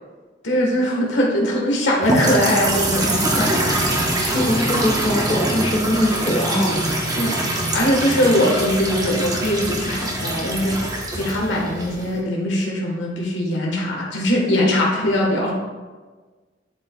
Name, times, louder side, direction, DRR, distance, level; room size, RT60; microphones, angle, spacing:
voice 1, 0.4-3.4 7.2-10.8 11.2-15.5, equal, 75° left, -2 dB, 1.3 m, -21 dB
sound 1, 2.0-12.2, right 1 dB, 20° right, 0.9 m, -23 dB
voice 2, 3.4-6.8, equal, 30° left, -5 dB, 1.6 m, -22 dB
10.5 x 4.7 x 2.3 m, 1.3 s
head